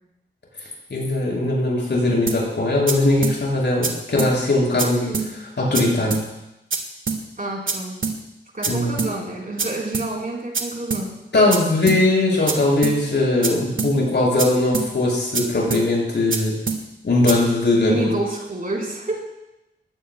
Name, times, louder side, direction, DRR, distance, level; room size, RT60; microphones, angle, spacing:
voice 1, 0.9-5.1 5.6-6.2 8.7-9.0 11.3-16.5 17.0-18.1, left 2 dB, 60° left, -3 dB, 6.3 m, -20 dB
sound 1, 2.3-2.4 2.9-3.0 3.2-3.4 3.8-3.9 4.2-4.3 4.8-4.9 5.1-5.3 5.7-5.8 6.1-6.2 6.7-6.8 7.1-7.2 7.7-7.8 8.0-8.2 8.6-8.7 9.0-9.1 9.6-9.7 9.9-10.1 10.5-10.6 10.9-11.0 11.5-11.6 11.9-12.0 12.5-12.6 12.8-13.0 13.4-13.5 13.8-13.9 14.4-14.5 14.7-14.9 15.3-15.4 15.7-15.8 16.3-16.4 16.7-16.8 17.3-17.4, right 4 dB, 80° right, 1.6 m, -24 dB
voice 2, 7.4-7.9 8.5-11.1 17.8-19.2, right 2 dB, 45° right, -2 dB, 4.0 m, -28 dB
20.5 x 16.5 x 2.2 m, 0.93 s
wide cardioid pair, 105°, 20 cm